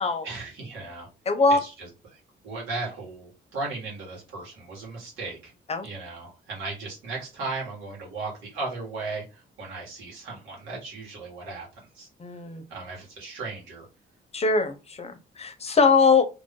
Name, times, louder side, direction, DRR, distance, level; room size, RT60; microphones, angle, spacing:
voice 1, 0.2-1.1 1.5-5.5 5.8-12.1 12.7-13.9, right 3 dB, 85° right, -3 dB, 1.9 m, -36 dB
voice 2, 1.3-1.6 5.7-5.8 12.2-12.6 14.3-16.3, left 4 dB, 30° left, 9 dB, 0.8 m, -22 dB
3.1 x 2.6 x 3.7 m, 0.29 s
cardioid pair, 90°, 20 cm